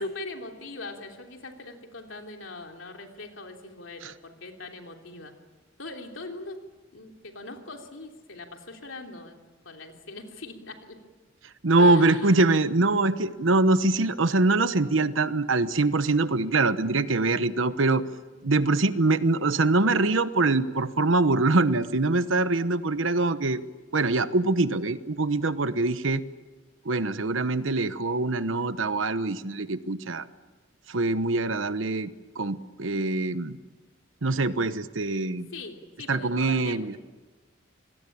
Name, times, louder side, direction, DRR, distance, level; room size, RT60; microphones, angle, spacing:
voice 1, 0.0-5.3 5.8-6.6 6.9-9.4 9.6-11.0 11.8-12.4 35.5-37.0, left 2 dB, 80° left, 3 dB, 3.2 m, -41 dB
voice 2, 11.6-18.0 18.4-23.6 23.9-26.2 26.8-30.2 30.9-32.1 32.4-33.6 34.2-35.5 36.1-37.0, right 2 dB, 85° right, 13 dB, 1.1 m, -24 dB
26.5 x 20.0 x 8.6 m, 1.3 s
head